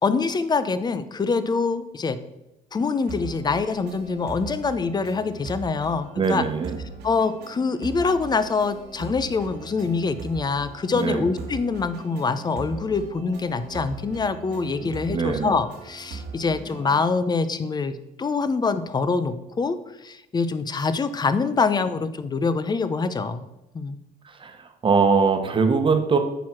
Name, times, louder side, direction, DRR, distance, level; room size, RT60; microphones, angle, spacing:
voice 1, 0.0-2.2 2.7-6.4 7.0-19.8 20.0-23.4 23.7-24.0, left 4 dB, 25° left, 12 dB, 0.6 m, -25 dB
sound 1, 3.0-17.1, right 4 dB, 85° right, 1.6 m, -40 dB
voice 2, 6.2-6.8 10.9-11.2 14.8-15.6 24.2-26.2, right 5 dB, 30° right, 6 dB, 1.2 m, -22 dB
9.2 x 4.6 x 5.9 m, 0.92 s
cardioid pair, 110°, 17 cm